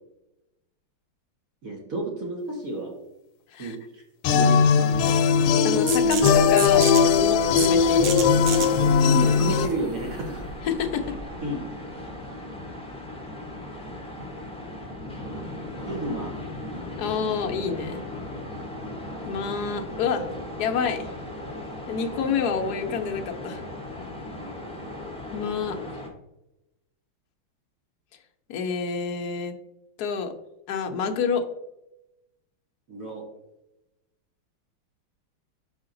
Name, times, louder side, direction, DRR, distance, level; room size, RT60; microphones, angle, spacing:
voice 1, 1.6-2.9 3.6-4.0 4.3-5.1 6.0-6.4 9.0-10.5 11.4-11.7 15.8-16.4 32.9-33.2, right 2 dB, 50° right, -1 dB, 1.3 m, -31 dB
sound 1, 4.2-9.7, left 6 dB, 90° left, 1.5 m, -19 dB
voice 2, 5.6-6.8 7.2-8.2 10.6-11.1 17.0-18.0 19.2-20.3 20.6-21.1 21.9-23.7 25.3-25.8 28.5-29.5 30.0-30.3 30.7-31.4, left 6 dB, 65° left, 4 dB, 1.0 m, -28 dB
sound 2, 5.9-11.4, right 6 dB, 70° right, 1.6 m, -33 dB
sound 3, 6.9-26.1, left 1 dB, 5° left, 0.5 m, -37 dB
5.8 x 5.6 x 3.8 m, 0.91 s
omnidirectional pair, 2.3 m